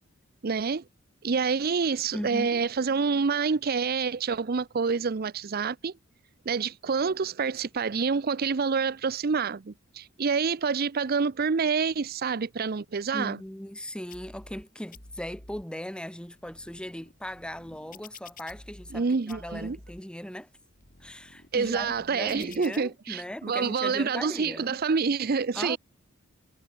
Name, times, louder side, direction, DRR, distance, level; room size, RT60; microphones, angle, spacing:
voice 1, 0.4-0.8 1.2-5.9 6.5-13.4 18.9-19.8 21.5-25.8, right 5 dB, 45° right, 0.5 m, -27 dB
voice 2, 2.1-2.6 13.1-20.5 21.0-24.8 25.5-25.8, equal, 5° left, 1.1 m, -38 dB
sound 1, 14.1-14.6 14.9-15.6 16.2-19.0 19.3-20.0 20.6-22.8, left 3 dB, 40° left, 6.1 m, -50 dB
head